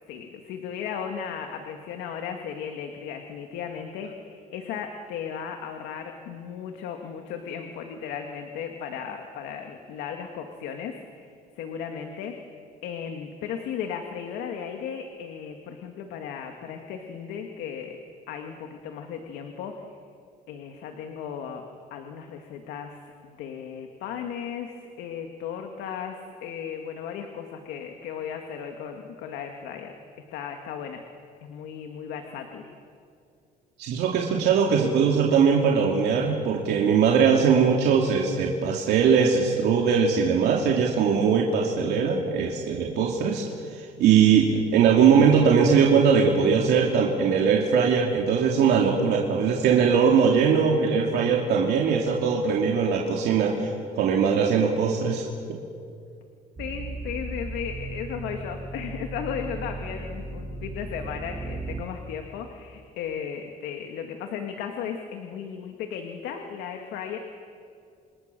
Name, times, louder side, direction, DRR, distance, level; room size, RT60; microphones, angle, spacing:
voice 1, 0.1-11.3 11.6-12.3 12.8-18.0 18.3-19.8 20.5-21.6 21.9-29.9 30.3-31.0 31.4-32.7 56.6-67.2, left 7 dB, 90° left, 4 dB, 2.1 m, -36 dB
voice 2, 33.8-53.7 54.0-55.6, right 6 dB, 75° right, -1 dB, 2.8 m, -21 dB
sound 1, 56.6-61.8, right 2 dB, 25° right, 2.1 m, -36 dB
27.5 x 27.0 x 6.9 m, 2.3 s
cardioid pair, 110°, 17 cm